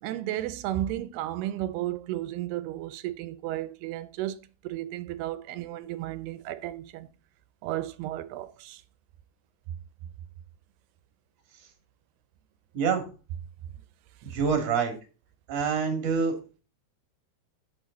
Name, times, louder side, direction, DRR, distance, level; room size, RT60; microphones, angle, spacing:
voice 1, 0.0-7.1 7.6-8.8 14.2-14.4, right 14 dB, 80° right, 2.6 m, -34 dB
voice 2, 12.7-13.0 14.2-14.9 15.5-16.3, right 6 dB, 45° right, 3.2 m, -26 dB
12.0 x 7.1 x 4.1 m
omnidirectional pair, 4.8 m